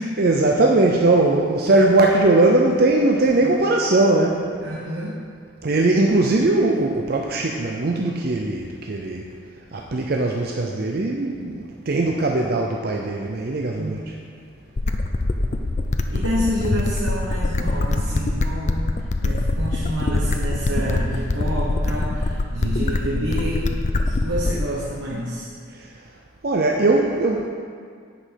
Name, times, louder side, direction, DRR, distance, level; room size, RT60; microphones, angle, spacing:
voice 1, 0.2-4.4 5.6-9.2 9.7-14.0 26.4-27.5, right 2 dB, 50° right, 1 dB, 0.6 m, -19 dB
voice 2, 4.6-5.2 13.8-14.0 16.1-18.8 19.2-23.7 24.0-25.5, equal, 75° right, -4 dB, 1.2 m, -28 dB
sound 1, 14.8-24.8, left 2 dB, 35° left, 0.4 m, -23 dB
9.9 x 5.2 x 5.8 m, 2.1 s
head